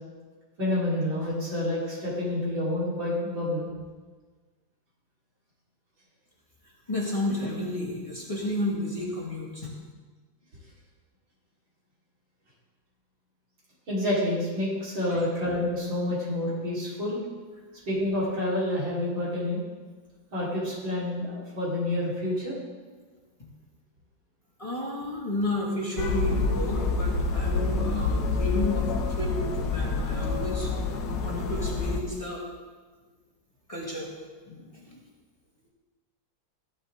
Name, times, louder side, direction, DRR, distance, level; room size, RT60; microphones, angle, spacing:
voice 1, 0.6-3.7 13.9-17.2 17.9-19.6 20.3-22.6, left 1 dB, 85° right, -7 dB, 4.8 m, -28 dB
voice 2, 6.9-9.7 15.1-15.2 24.6-30.7 31.2-32.4 33.7-34.1 34.5-35.0, left 1 dB, 20° left, -5 dB, 2.1 m, -32 dB
sound 1, 26.0-32.0, left 3 dB, 75° left, 1.6 m, -27 dB
15.5 x 11.5 x 3.7 m, 1.4 s
omnidirectional pair, 2.0 m